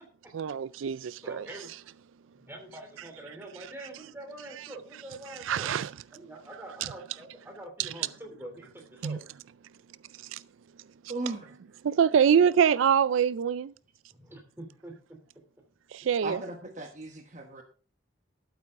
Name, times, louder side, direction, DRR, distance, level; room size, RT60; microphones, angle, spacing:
voice 1, 0.3-1.5 5.5-5.9 9.0-9.2 10.3-10.4 11.8-13.7 15.9-16.4, right 7 dB, 90° right, 0.4 m, -24 dB
voice 2, 1.2-1.7 2.4-5.7 6.1-9.2 14.1-14.9, right 1 dB, 10° right, 3.0 m, -45 dB
voice 3, 11.1-11.5 16.2-17.6, right 2 dB, 40° right, 1.1 m, -37 dB
12.0 x 9.0 x 3.6 m
head